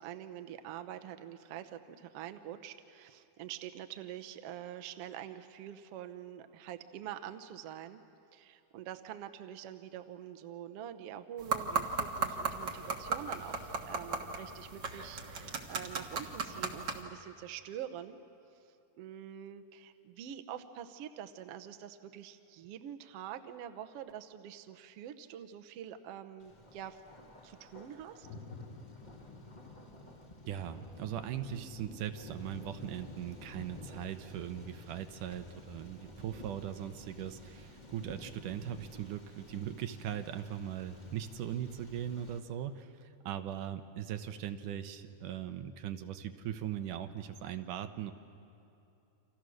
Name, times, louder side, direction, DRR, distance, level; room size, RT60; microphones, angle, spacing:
voice 1, 0.0-8.0 8.3-18.2 19.0-27.0 27.4-28.3, right 10 dB, 65° right, 8 dB, 1.6 m, -45 dB
sound 1, 11.4-17.0, right 4 dB, 45° right, 1.6 m, -36 dB
Thunder, 26.4-42.4, left 1 dB, 20° left, 1.4 m, -53 dB
Thunder 2, 28.2-35.4, left 3 dB, 75° left, 0.7 m, -53 dB
voice 2, 30.5-48.1, right 10 dB, 80° right, 8 dB, 2.5 m, -39 dB
29.5 x 26.0 x 6.4 m, 2.7 s
omnidirectional pair, 3.7 m